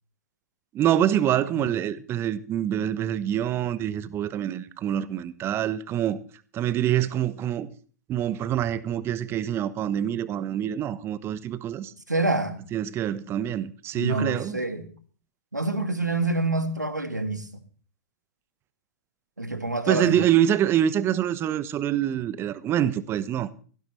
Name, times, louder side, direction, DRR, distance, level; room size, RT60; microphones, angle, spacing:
voice 1, 0.7-6.2 6.5-7.7 8.1-11.9 12.7-14.6 19.9-23.5, right 11 dB, 25° right, 1.0 m, -25 dB
voice 2, 12.1-12.6 13.9-14.9 15.5-17.5 19.4-20.3, right 2 dB, 85° right, 1.8 m, -27 dB
18.5 x 16.0 x 3.2 m
figure-of-eight pair, 100°, 9 cm